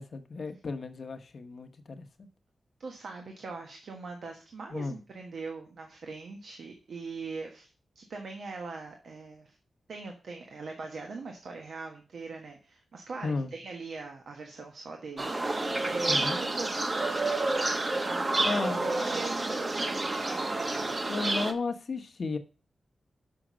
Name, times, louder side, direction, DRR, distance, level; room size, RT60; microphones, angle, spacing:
voice 1, 0.0-2.3 4.7-5.0 13.2-13.5 16.1-16.4 18.4-19.0 21.1-22.4, left 3 dB, 55° left, 1.0 m, -34 dB
voice 2, 2.8-9.6 9.9-16.9 18.0-20.4, right 4 dB, 75° right, 1.3 m, -41 dB
sound 1, 15.2-21.5, right 2 dB, 30° right, 1.0 m, -29 dB
6.3 x 5.7 x 6.1 m
wide cardioid pair, 110°, 0 cm